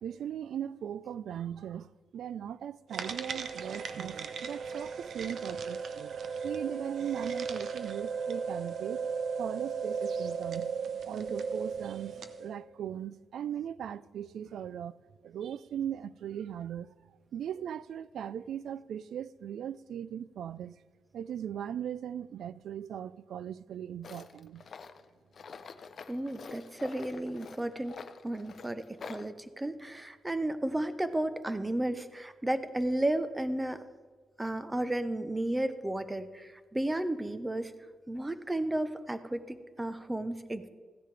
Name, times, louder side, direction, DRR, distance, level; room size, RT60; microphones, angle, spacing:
voice 1, 0.0-9.1 9.4-10.7 11.1-15.0 15.2-16.9 17.3-20.8 21.1-24.6, right 9 dB, 85° right, 0.3 m, -39 dB
sound 1, 2.9-12.4, right 5 dB, 70° right, 0.7 m, -36 dB
Tools, 24.0-29.3, left 5 dB, 55° left, 0.6 m, -47 dB
voice 2, 26.1-27.9 28.2-33.8 34.4-37.7 38.1-40.7, right 1 dB, 15° right, 0.7 m, -33 dB
15.0 x 10.0 x 3.3 m
cardioid pair, 110°, 0 cm